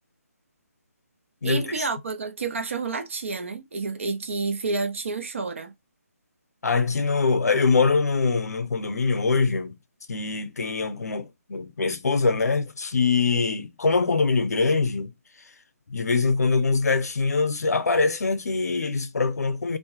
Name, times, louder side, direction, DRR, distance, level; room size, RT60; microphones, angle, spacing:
voice 1, 1.4-5.7, right 4 dB, 50° right, 0.7 m, -29 dB
voice 2, 6.6-9.8 10.1-15.1 15.9-19.8, left 4 dB, 85° left, 0.7 m, -23 dB
2.6 x 2.2 x 2.9 m
hypercardioid pair, 170°, 9 cm